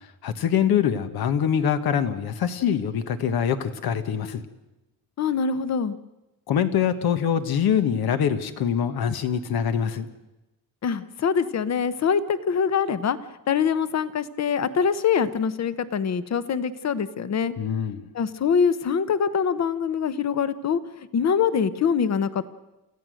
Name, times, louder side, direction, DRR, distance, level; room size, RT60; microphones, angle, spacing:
voice 1, 0.2-4.4 6.5-10.1 17.6-18.1, left 8 dB, 80° left, 10 dB, 1.4 m, -24 dB
voice 2, 5.2-5.9 10.8-13.2 13.5-17.5 18.1-20.8 21.1-22.5, left 6 dB, 45° left, 14 dB, 0.9 m, -24 dB
29.0 x 14.5 x 6.5 m, 1.0 s
cardioid pair, 155°, 37 cm